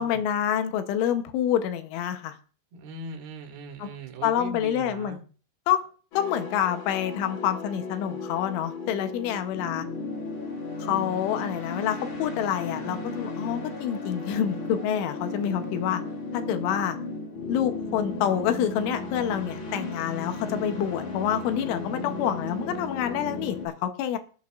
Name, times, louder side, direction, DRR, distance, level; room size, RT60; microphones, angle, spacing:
voice 1, 0.0-2.4 3.8-3.9 4.2-5.2 5.7-5.8 6.1-9.9 10.8-16.0 16.3-17.0 17.5-24.2, left 9 dB, 80° left, 8 dB, 3.2 m, -27 dB
voice 2, 2.7-5.2, right 3 dB, 65° right, 4 dB, 3.3 m, -39 dB
sound 1, 6.1-23.7, left 3 dB, 55° left, 4.1 m, -35 dB
25.5 x 8.5 x 2.4 m, 0.40 s
omnidirectional pair, 5.8 m